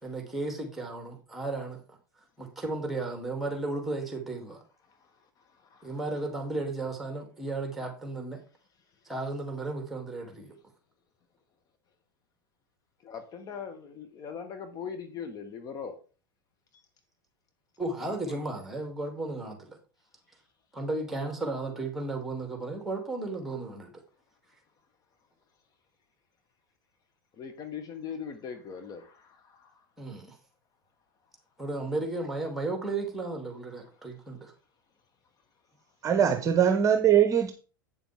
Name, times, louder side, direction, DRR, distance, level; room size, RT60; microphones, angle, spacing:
voice 1, 0.0-1.8 2.4-4.6 5.8-8.4 9.0-10.5 17.8-19.8 20.7-23.9 30.0-30.4 31.6-34.5, right 2 dB, ahead, 3.0 m, -34 dB
voice 2, 5.5-6.0 13.0-16.0 16.7-16.8 18.0-18.4 27.4-29.7 36.2-36.4, left 6 dB, 35° left, 1.3 m, -41 dB
voice 3, 36.0-37.5, right 9 dB, 30° right, 1.0 m, -22 dB
8.6 x 7.1 x 3.7 m
figure-of-eight pair, 90°, 12 cm